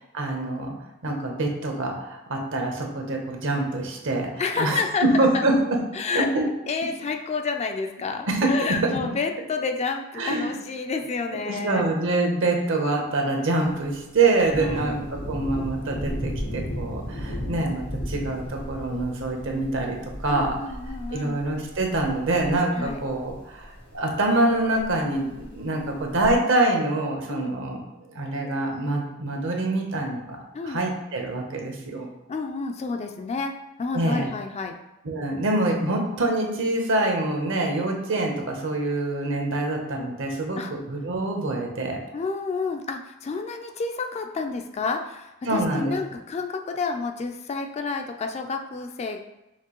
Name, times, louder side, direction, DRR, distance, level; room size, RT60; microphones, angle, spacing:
voice 1, 0.1-0.7 1.0-4.3 4.6-5.8 6.1-6.5 8.3-8.9 10.2-10.5 11.4-15.0 15.3-20.5 21.1-27.8 28.1-30.4 30.6-32.1 33.9-34.3 35.0-42.0 45.5-46.0, right 2 dB, 65° right, 2 dB, 0.9 m, -25 dB
voice 2, 4.4-5.4 5.9-6.3 6.7-11.9 14.6-15.0 20.2-21.4 22.8-23.0 27.3-27.5 30.5-30.9 32.3-34.8 40.6-40.7 42.1-49.2, left 4 dB, 30° left, 4 dB, 0.3 m, -30 dB
Thunder, 13.6-26.3, equal, 90° left, 1.5 m, -36 dB
5.9 x 2.7 x 3.0 m, 0.96 s
head